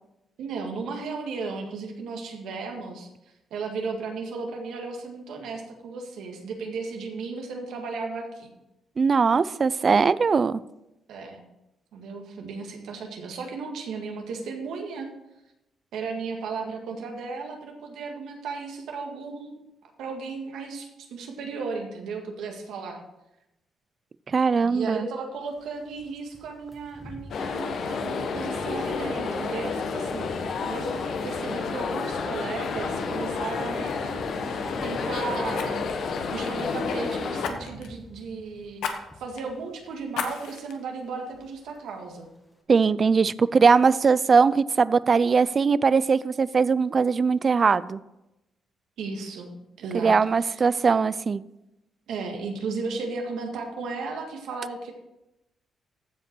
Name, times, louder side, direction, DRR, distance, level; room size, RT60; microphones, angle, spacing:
voice 1, 0.4-3.1 3.5-8.5 11.1-11.4 11.9-15.1 15.9-23.0 24.6-35.8 36.3-38.8 39.2-42.3 49.0-50.1 50.4-50.6 52.1-54.9, right 4 dB, 85° right, 3 dB, 1.8 m, -35 dB
voice 2, 9.0-10.6 24.3-25.1 42.7-48.0 49.9-51.4, right 5 dB, 40° right, 18 dB, 0.3 m, -20 dB
sound 1, 25.5-36.4 36.8-40.2 40.4-40.7 41.0-41.8 42.1-42.3, left 1 dB, 5° left, 1.8 m, -48 dB
sound 2, 27.3-37.5, left 4 dB, 65° left, 1.1 m, -30 dB
Fire, 32.8-33.1 33.4-33.6 35.5-37.0 37.4-38.0 38.8-39.0 39.4-39.5 40.1-40.7 41.3-41.4, left 6 dB, 90° left, 1.2 m, -34 dB
15.0 x 5.1 x 4.6 m, 0.92 s
cardioid pair, 110°, 0 cm